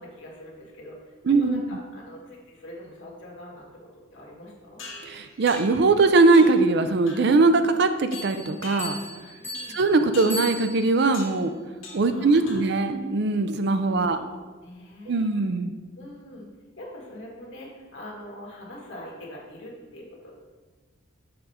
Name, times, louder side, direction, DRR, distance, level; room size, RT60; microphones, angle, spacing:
voice 1, 0.0-1.1 1.4-4.8 9.4-9.8 12.1-12.6 14.1-14.2 14.6-15.3 15.9-16.5 16.8-20.4, left 1 dB, 60° left, -4 dB, 1.8 m, -43 dB
voice 2, 1.3-1.6 5.0-9.0 9.7-11.5 11.9-14.2 15.1-15.7, right 3 dB, 55° right, 9 dB, 0.5 m, -21 dB
sound 1, 4.8-5.9 6.3-6.7 7.1-7.4 8.1-9.2 9.5-9.8 10.1-10.5 11.1-11.4 11.8-12.2 12.5-12.9, left 3 dB, 75° left, 1.6 m, -42 dB
sound 2, 8.1-11.2, left 1 dB, 10° left, 1.3 m, -37 dB
6.8 x 5.0 x 4.2 m, 1.3 s
head